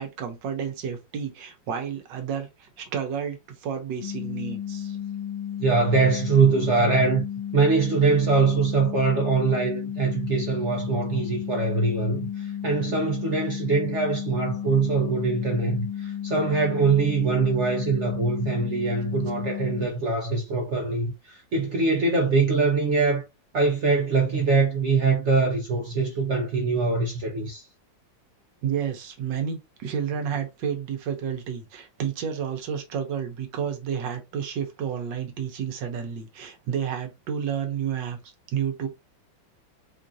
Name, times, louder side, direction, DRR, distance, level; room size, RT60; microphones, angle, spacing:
voice 1, 0.0-5.0 28.6-38.2 38.5-38.9, right 8 dB, 75° right, 1.5 m, -31 dB
sound 1, 4.0-19.9, left 9 dB, 50° left, 0.8 m, -33 dB
voice 2, 5.6-7.2 7.5-23.2 23.5-27.6, right 4 dB, 60° right, 0.7 m, -23 dB
4.5 x 2.5 x 2.5 m
omnidirectional pair, 2.0 m